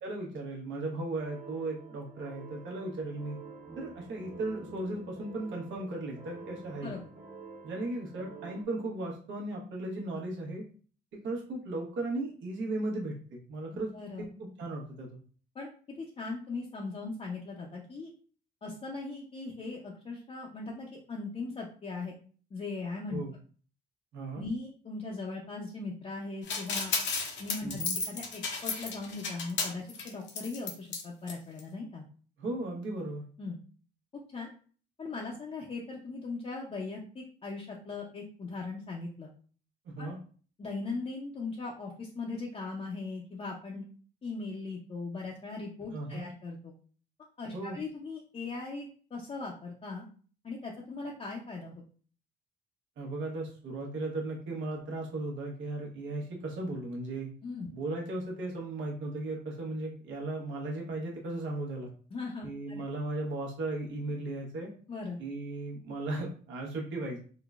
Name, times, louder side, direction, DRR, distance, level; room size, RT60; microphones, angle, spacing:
voice 1, 0.0-3.4 3.8-6.9 7.6-10.6 11.2-13.9 14.2-15.1 23.1-23.3 24.1-24.5 27.6-27.9 32.4-33.3 39.8-40.2 45.9-46.2 47.5-47.8 53.0-57.3 57.7-61.9 62.4-64.7 65.2-67.2, right 2 dB, 75° right, -1 dB, 1.0 m, -36 dB
sound 1, 1.2-8.6, right 4 dB, 35° right, 1.2 m, -49 dB
voice 2, 13.7-14.2 15.5-15.7 16.0-18.1 18.6-22.1 22.5-23.2 24.3-26.9 27.4-27.8 28.1-32.0 33.4-33.6 34.3-34.5 35.0-39.3 40.0-40.1 40.6-43.8 44.2-46.7 47.4-50.0 50.4-51.8 57.4-57.7 62.1-62.8 64.9-65.2, left 3 dB, 30° left, -2 dB, 0.5 m, -39 dB
sound 2, 26.5-31.0 31.3-31.4 31.6-31.7, left 4 dB, 65° left, 0.7 m, -33 dB
3.7 x 2.0 x 2.4 m, 0.42 s
cardioid pair, 90°, 20 cm